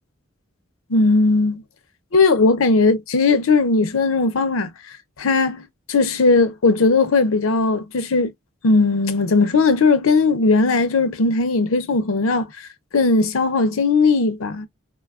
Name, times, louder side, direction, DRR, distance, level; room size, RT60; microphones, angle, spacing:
voice 1, 0.9-1.6 2.1-4.7 5.2-8.3 8.6-12.7 12.9-14.7, left 3 dB, 75° left, 0.6 m, -18 dB
3.8 x 2.3 x 2.3 m
head